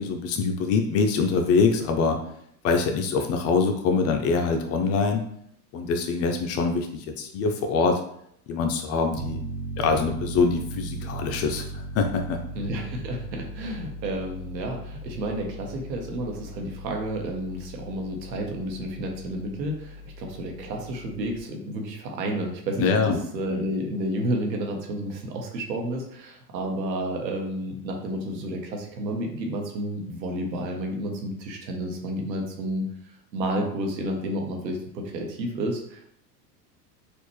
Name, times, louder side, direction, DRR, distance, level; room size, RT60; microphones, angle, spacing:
voice 1, 0.0-2.2 2.6-5.2 5.7-8.0 8.5-9.4 9.8-12.4 22.8-23.2 23.5-23.7, left 4 dB, 35° left, 5 dB, 0.4 m, -24 dB
Piano, 9.2-21.4, right 2 dB, 25° right, 0.8 m, -38 dB
voice 2, 12.5-32.9 33.3-36.1, right 1 dB, 85° right, 2 dB, 1.0 m, -31 dB
4.2 x 2.4 x 3.1 m, 0.70 s
hypercardioid pair, 95°, 50 cm